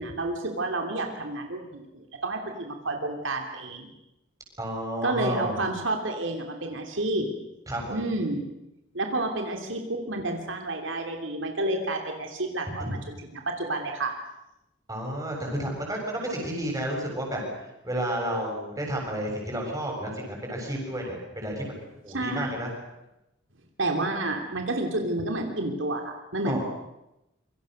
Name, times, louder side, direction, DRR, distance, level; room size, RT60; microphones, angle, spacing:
voice 1, 0.0-3.9 5.0-7.3 7.9-8.5 8.9-14.1 22.1-22.5 23.8-26.6, right 2 dB, 75° right, 3 dB, 3.1 m, -30 dB
voice 2, 4.6-5.6 7.7-8.0 12.8-13.0 14.9-17.4 17.8-21.8 22.0-22.7 26.5-26.6, right 1 dB, 15° right, 0 dB, 7.3 m, -31 dB
27.0 x 24.0 x 6.6 m, 0.91 s
head